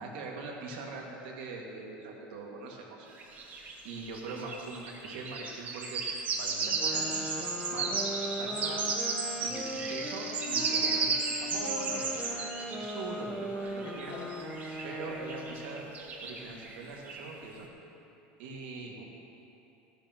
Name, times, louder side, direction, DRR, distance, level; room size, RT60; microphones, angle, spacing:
voice 1, 0.0-3.1 3.8-6.0 6.4-8.8 9.4-14.2 14.8-15.9 16.2-17.7 18.4-19.0, right 3 dB, 80° right, -1 dB, 2.0 m, -42 dB
sound 1, 3.2-13.0 13.8-17.3, right 4 dB, 35° right, 1.5 m, -34 dB
sound 2, 6.8-16.0, equal, 5° left, 0.9 m, -39 dB
voice 2, 13.7-15.1, left 3 dB, 55° left, -2 dB, 2.1 m, -48 dB
14.0 x 11.5 x 3.0 m, 2.9 s
supercardioid pair, 135°, 5 cm